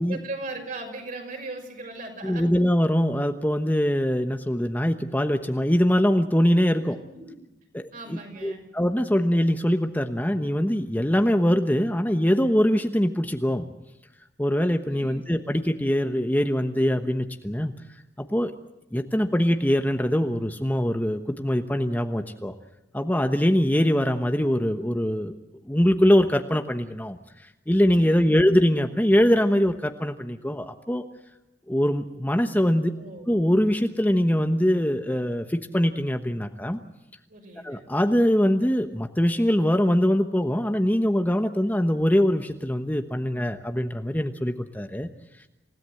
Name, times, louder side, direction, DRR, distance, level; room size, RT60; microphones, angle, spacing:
voice 1, 0.0-2.5 6.8-7.3 7.9-8.6 14.9-15.2 28.0-28.2 32.9-33.2 37.3-37.8, right 2 dB, 50° right, 2 dB, 6.0 m, -38 dB
voice 2, 2.2-7.0 7.7-13.7 14.4-17.7 18.2-18.5 18.9-22.5 22.9-25.3 25.7-27.2 27.7-31.0 31.7-32.9 33.3-36.8 37.6-45.1, equal, 10° left, 6 dB, 1.1 m, -23 dB
28.0 x 17.0 x 7.8 m, 0.93 s
head